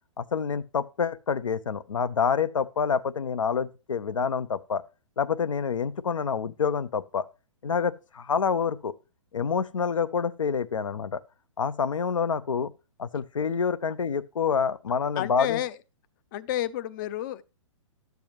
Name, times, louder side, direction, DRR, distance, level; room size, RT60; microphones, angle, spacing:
voice 1, 0.2-4.8 5.2-7.3 7.6-8.9 9.3-11.2 11.6-12.7 13.0-15.6, left 6 dB, 75° left, 0.7 m, -27 dB
voice 2, 15.2-15.7 16.3-17.4, left 13 dB, 40° left, 0.6 m, -30 dB
12.0 x 7.1 x 3.0 m
figure-of-eight pair, 125°, 17 cm